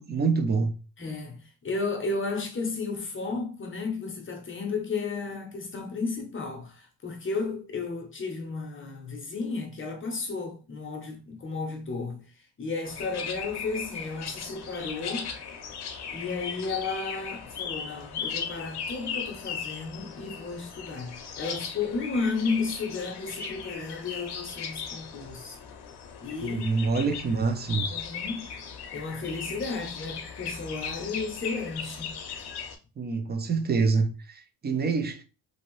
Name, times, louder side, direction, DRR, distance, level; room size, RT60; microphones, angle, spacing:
voice 1, 0.0-0.8 26.4-27.9 33.0-35.2, right 4 dB, 25° right, 0.4 m, -26 dB
voice 2, 1.0-12.2 12.6-15.3 16.1-25.6 26.2-27.0 27.9-28.5 28.9-32.2, left 4 dB, 30° left, 0.7 m, -33 dB
sound 1, 12.8-32.8, left 6 dB, 60° left, 0.7 m, -38 dB
2.8 x 2.6 x 3.0 m
cardioid pair, 135°, 43 cm